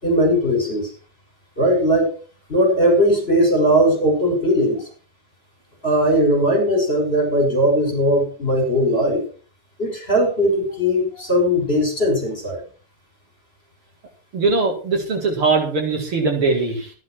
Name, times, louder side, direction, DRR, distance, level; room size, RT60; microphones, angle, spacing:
voice 1, 0.0-0.9 1.6-2.2 2.5-4.9 5.8-9.2 9.8-12.6, equal, 25° left, 1 dB, 7.1 m, -18 dB
voice 2, 14.3-16.9, right 3 dB, 80° right, 1 dB, 5.0 m, -20 dB
14.5 x 12.0 x 4.7 m, 0.39 s
omnidirectional pair, 2.4 m